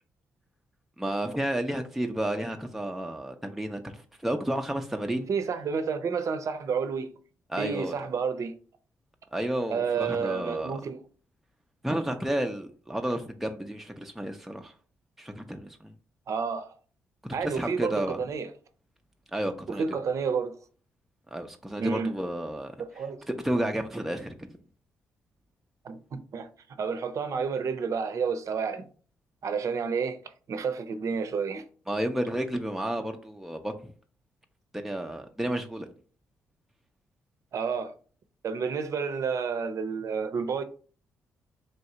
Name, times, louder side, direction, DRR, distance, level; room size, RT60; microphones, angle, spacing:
voice 1, 1.0-5.2 7.5-7.9 9.3-10.7 11.8-14.7 15.2-15.9 17.4-18.2 19.3-20.0 21.3-22.7 23.3-24.3 31.9-33.7 34.7-35.9, right 1 dB, 5° right, 0.6 m, -31 dB
voice 2, 5.1-7.1 7.6-8.6 9.7-11.0 16.3-16.7 17.3-18.5 19.7-20.6 21.8-22.2 22.8-23.2 25.8-26.5 26.8-28.9 29.4-30.2 30.5-31.6 37.5-37.9 38.4-40.6, right 5 dB, 60° right, 0.6 m, -30 dB
3.4 x 2.7 x 4.2 m
supercardioid pair, 55°, 6 cm